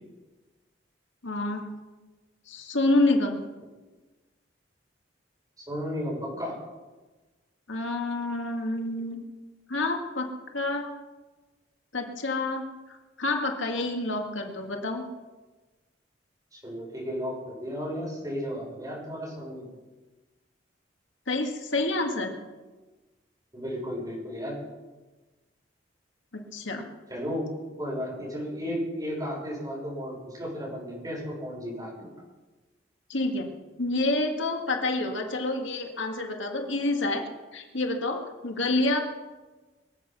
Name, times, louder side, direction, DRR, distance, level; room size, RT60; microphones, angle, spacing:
voice 1, 1.2-1.7 2.5-3.5 7.7-9.2 9.7-10.3 10.5-10.9 11.9-15.1 21.3-22.4 26.3-26.8 33.1-33.5 33.8-39.0, left 2 dB, 85° left, 3 dB, 1.9 m, -28 dB
voice 2, 5.7-6.6 16.5-19.7 23.5-24.5 27.1-27.5 27.8-32.1, equal, 20° right, -4 dB, 6.3 m, -34 dB
24.0 x 8.0 x 6.1 m, 1.2 s
head